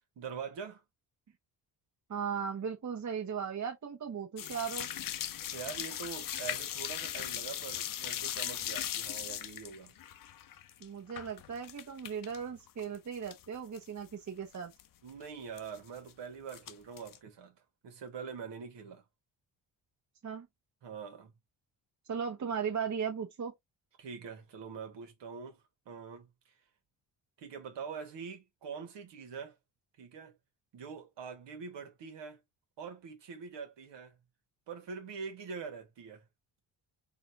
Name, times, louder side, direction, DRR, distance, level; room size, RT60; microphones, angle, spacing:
voice 1, 0.2-0.8 5.5-9.9 15.0-17.5 17.8-19.0 20.8-21.3 24.0-26.3 27.4-29.6 30.0-30.4 30.7-32.4 32.8-34.2 34.7-36.3, right 6 dB, 70° right, 1.5 m, -44 dB
voice 2, 2.1-4.9 10.8-14.7 20.2-20.5 22.1-23.5, right 7 dB, 40° right, 1.3 m, -37 dB
sound 1, 4.4-12.4 12.7-13.5 13.7-13.8 14.3-14.4 14.5-14.8 15.6-16.1 16.5-17.2, left 11 dB, 50° left, 0.6 m, -38 dB
4.1 x 2.7 x 2.7 m
cardioid pair, 70°, 44 cm